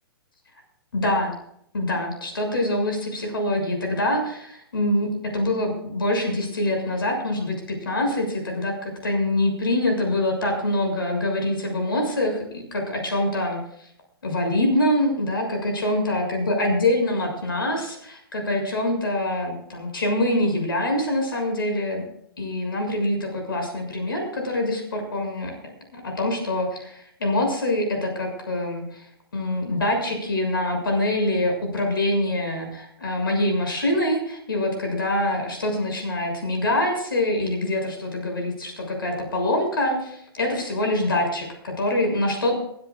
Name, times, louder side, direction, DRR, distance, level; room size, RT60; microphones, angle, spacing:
voice 1, 0.9-1.3 1.7-13.9 14.2-22.1 22.4-25.5 25.9-29.1 29.3-42.5, left 1 dB, 65° left, 3 dB, 6.8 m, -25 dB
22.5 x 16.0 x 2.5 m, 0.70 s
figure-of-eight pair, 120°, 13 cm